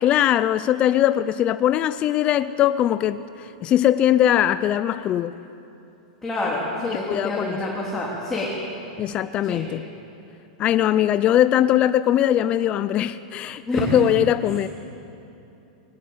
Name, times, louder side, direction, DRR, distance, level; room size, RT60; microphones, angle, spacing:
voice 1, 0.0-5.3 6.8-7.6 9.0-9.9 10.6-14.7, left 11 dB, 30° left, 13 dB, 0.5 m, -21 dB
voice 2, 6.2-8.5 9.4-9.6 13.7-14.0, left 1 dB, 10° left, -5 dB, 3.3 m, -27 dB
20.5 x 19.0 x 8.1 m, 2.9 s
supercardioid pair, 150°, 4 cm